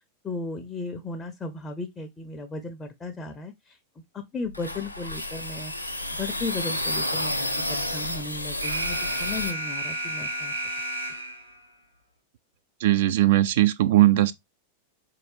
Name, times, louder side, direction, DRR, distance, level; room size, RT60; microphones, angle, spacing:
voice 1, 0.2-3.8 4.1-5.7 6.1-10.5, left 3 dB, 20° left, 0.6 m, -35 dB
sound 1, 4.5-9.5, left 1 dB, 85° left, 0.5 m, -30 dB
Alarm, 8.6-11.6, right 1 dB, 85° right, 1.3 m, -32 dB
voice 2, 12.8-14.3, right 15 dB, 55° right, 0.3 m, -19 dB
4.3 x 2.7 x 3.2 m
figure-of-eight pair, 90°, 0 cm